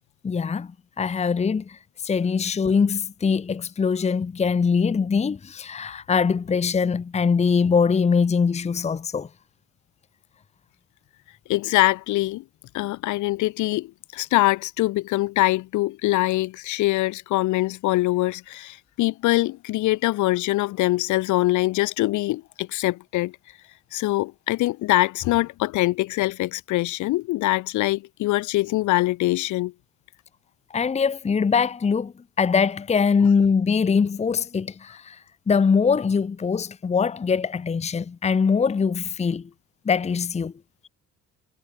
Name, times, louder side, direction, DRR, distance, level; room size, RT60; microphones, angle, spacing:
voice 1, 0.2-0.7 1.0-9.3 30.7-35.2 35.5-39.5 39.8-40.5, left 5 dB, 25° left, 1.0 m, -22 dB
voice 2, 11.5-12.4 12.7-23.4 23.9-29.7, left 18 dB, 80° left, 4.3 m, -23 dB
cardioid pair, 110°, 29 cm